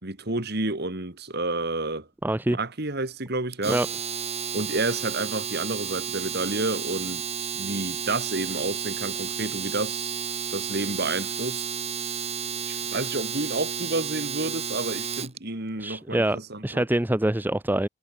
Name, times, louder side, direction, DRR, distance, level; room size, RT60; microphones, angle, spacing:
voice 1, 0.0-2.1 2.5-3.8 4.5-10.1 10.5-11.7 12.7-16.9, right 2 dB, 50° right, 2.3 m, -30 dB
voice 2, 2.2-2.6 3.7-3.9 15.8-16.4 16.6-17.9, right 1 dB, 10° right, 0.5 m, -24 dB
Domestic sounds home sounds, 3.5-15.4, right 7 dB, 30° right, 2.7 m, -32 dB
head